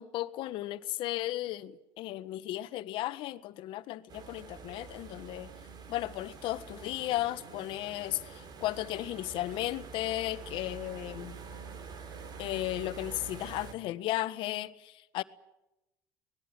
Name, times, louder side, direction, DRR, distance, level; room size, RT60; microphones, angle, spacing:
voice 1, 0.0-5.5 5.9-11.4 12.4-15.2, left 15 dB, 65° left, 1.5 m, -35 dB
sound 1, 4.1-13.7, right 5 dB, 45° right, 3.7 m, -46 dB
24.5 x 20.0 x 9.1 m
supercardioid pair, 85°, 9 cm